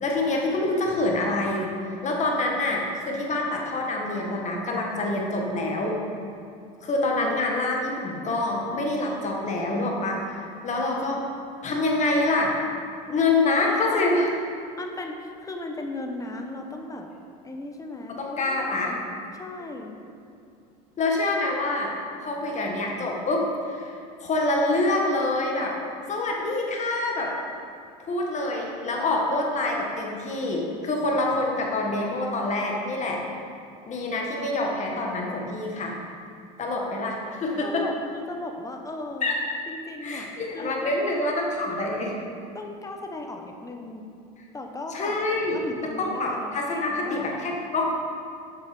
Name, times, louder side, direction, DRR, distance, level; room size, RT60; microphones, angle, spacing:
voice 1, 0.0-6.0 6.8-11.2 11.6-12.5 13.1-14.3 18.1-18.9 19.6-19.7 21.0-21.9 22.2-25.7 26.1-27.3 28.0-33.2 33.9-36.0 36.6-37.8 39.2-39.4 40.0-42.1 44.9-47.9, left 2 dB, 35° left, -1 dB, 1.8 m, -26 dB
voice 2, 13.7-14.3 14.8-17.1 17.4-19.0 19.3-20.0 37.6-39.3 39.7-41.1 41.6-42.0 42.5-44.0 44.5-45.2 45.5-47.4, left 2 dB, 15° left, 3 dB, 1.0 m, -36 dB
7.9 x 6.2 x 5.3 m, 2.4 s
supercardioid pair, 100°, 21 cm